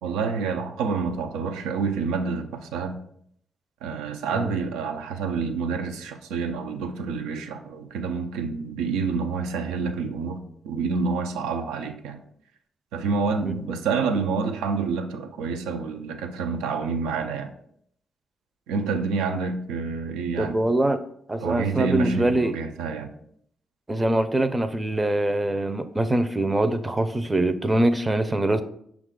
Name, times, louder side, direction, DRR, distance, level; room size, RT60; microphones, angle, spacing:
voice 1, 0.0-3.0 3.8-12.2 12.9-17.5 18.7-20.6 21.4-23.1, right 5 dB, 90° right, 6 dB, 0.4 m, -28 dB
voice 2, 20.4-21.0 21.3-22.6 23.9-28.6, right 1 dB, 20° right, 10 dB, 0.5 m, -23 dB
5.6 x 2.4 x 3.7 m, 0.68 s
supercardioid pair, 55°, 0 cm